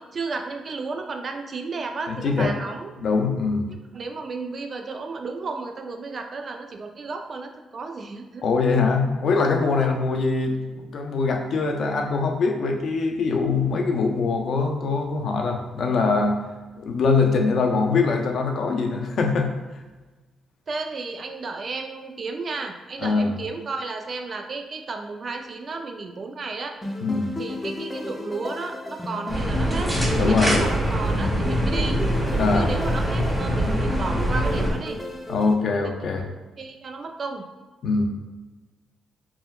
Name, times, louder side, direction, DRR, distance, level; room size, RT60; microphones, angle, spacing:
voice 1, 0.0-2.9 3.9-8.4 9.8-9.9 20.7-26.7 27.4-29.9 30.3-32.0 32.5-35.0 35.7-35.9 36.6-37.4, right 4 dB, 50° right, 4 dB, 0.3 m, -33 dB
voice 2, 2.1-2.5 3.0-3.7 8.4-16.4 16.8-19.5 23.0-23.3 27.0-27.3 30.2-30.6 32.4-32.7 35.3-36.2 37.8-38.1, left 4 dB, 65° left, 3 dB, 0.4 m, -23 dB
sound 1, 26.8-35.5, left 2 dB, 20° left, 0.6 m, -33 dB
sound 2, 29.3-34.7, equal, 20° right, 1.2 m, -24 dB
3.4 x 2.1 x 2.3 m, 1.2 s
supercardioid pair, 55°, 0 cm